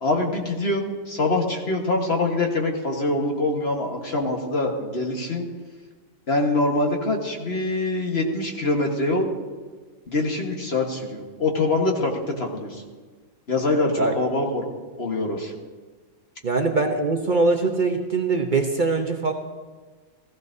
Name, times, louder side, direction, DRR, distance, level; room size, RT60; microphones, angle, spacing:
voice 1, 0.0-5.4 6.3-9.3 10.1-12.8 13.5-14.7 15.0-15.5, left 2 dB, 40° left, 1 dB, 1.5 m, -24 dB
voice 2, 16.4-19.3, right 3 dB, 45° right, 3 dB, 0.7 m, -22 dB
16.0 x 15.0 x 2.7 m, 1.4 s
omnidirectional pair, 1.7 m